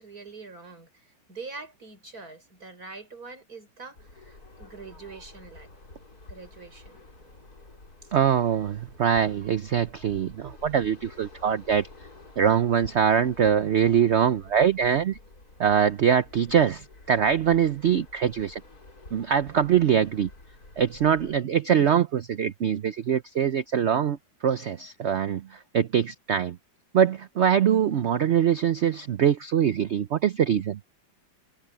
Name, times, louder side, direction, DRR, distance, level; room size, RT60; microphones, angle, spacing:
voice 1, 0.0-5.7 6.3-7.0 8.0-8.1, right 4 dB, 50° right, 5.9 m, -44 dB
sound 1, 3.9-21.4, left 2 dB, 50° left, 4.8 m, -49 dB
voice 2, 8.1-11.9 12.4-15.2 15.6-18.6 19.1-20.3 20.8-24.2 24.4-26.6 26.9-30.8, right 8 dB, 85° right, 0.6 m, -23 dB
omnidirectional pair, 2.0 m